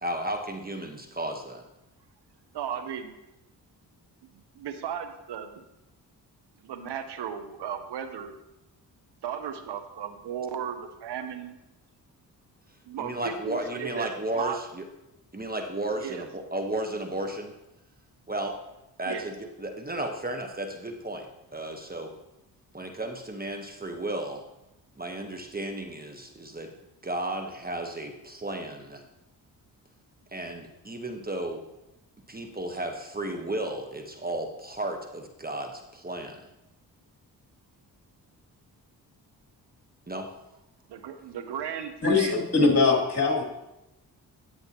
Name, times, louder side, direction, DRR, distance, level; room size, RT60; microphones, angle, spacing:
voice 1, 0.0-1.6 13.0-14.8 15.3-17.5 18.3-18.6 19.0-22.1 22.7-24.4 25.0-26.7 27.0-29.0 30.3-31.6 32.3-36.5 40.1-40.3, right 1 dB, 20° right, 4 dB, 1.2 m, -34 dB
voice 2, 2.5-3.2 4.5-5.5 6.6-8.4 9.2-11.6 12.9-14.1 14.3-14.6 16.0-16.2 19.0-19.3 40.9-42.3, right 8 dB, 75° right, 8 dB, 1.0 m, -35 dB
voice 3, 42.0-43.4, left 4 dB, 35° left, -1 dB, 3.0 m, -22 dB
10.5 x 7.8 x 3.0 m, 0.91 s
supercardioid pair, 55°, 41 cm